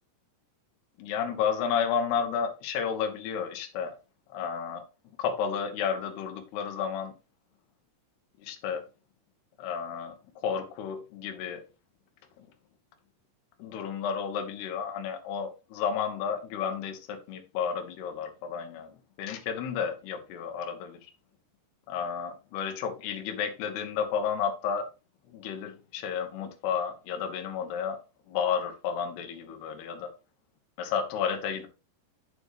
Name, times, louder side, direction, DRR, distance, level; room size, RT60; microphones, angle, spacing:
voice 1, 1.0-3.9 4.3-4.8 5.2-7.1 8.4-8.8 9.6-10.1 10.4-11.6 12.4-12.5 13.6-18.9 19.2-21.1 21.9-24.9 25.3-28.0 28.3-30.1 30.8-31.7, left 7 dB, 80° left, 3.1 m, -32 dB
8.1 x 7.0 x 3.0 m
omnidirectional pair, 4.8 m